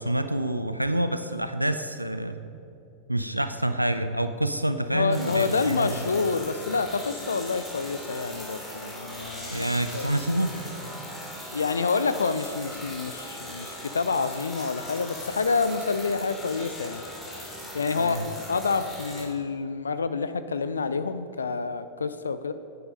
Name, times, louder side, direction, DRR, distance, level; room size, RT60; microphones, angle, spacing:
voice 1, 0.0-2.4 3.1-6.0 9.5-10.5 18.0-18.3, right 1 dB, 90° right, 10 dB, 0.4 m, -27 dB
voice 2, 4.9-9.7 9.9-10.1 11.5-17.0 17.7-22.5, left 4 dB, 75° left, 12 dB, 0.4 m, -28 dB
sound 1, 5.1-19.3, equal, 5° left, 2.8 m, -39 dB
10.5 x 9.3 x 5.3 m, 2.8 s
figure-of-eight pair, 90°, 0 cm